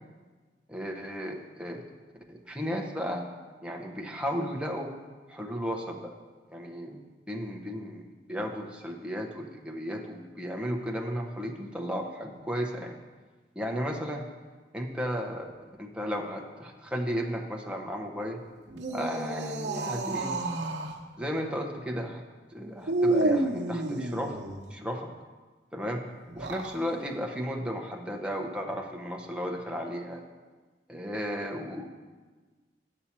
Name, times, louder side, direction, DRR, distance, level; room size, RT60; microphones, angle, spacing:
voice 1, 0.7-1.8 2.3-3.2 3.6-4.9 5.3-6.1 6.5-7.0 7.3-12.9 13.6-14.3 14.7-15.5 15.8-18.4 18.9-20.4 21.2-22.2 22.5-24.4 24.7-25.1 25.7-26.0 26.3-30.2 30.9-31.9, equal, 5° right, 1 dB, 0.7 m, -34 dB
sound 1, 18.7-21.0 22.8-24.6 26.2-26.8, right 2 dB, 90° right, 0.9 m, -30 dB
8.4 x 7.1 x 4.3 m, 1.4 s
head